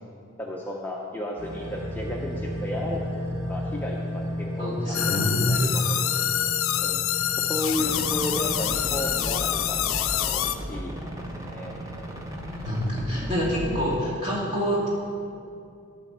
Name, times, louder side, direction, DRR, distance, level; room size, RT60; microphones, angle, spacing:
voice 1, 0.4-3.0 3.5-5.2 5.5-6.2 6.8-7.0 7.4-10.9 11.4-11.7, left 1 dB, 10° left, -2 dB, 0.5 m, -33 dB
sound 1, 1.4-13.8, equal, 60° right, 2.7 m, -35 dB
voice 2, 4.6-5.6 12.5-14.9, equal, 30° right, -7 dB, 2.6 m, -27 dB
sound 2, 4.9-10.6, left 12 dB, 70° left, 0.4 m, -26 dB
sound 3, 7.8-14.0, equal, 15° right, 0.8 m, -36 dB
11.5 x 4.2 x 7.2 m, 2.5 s
head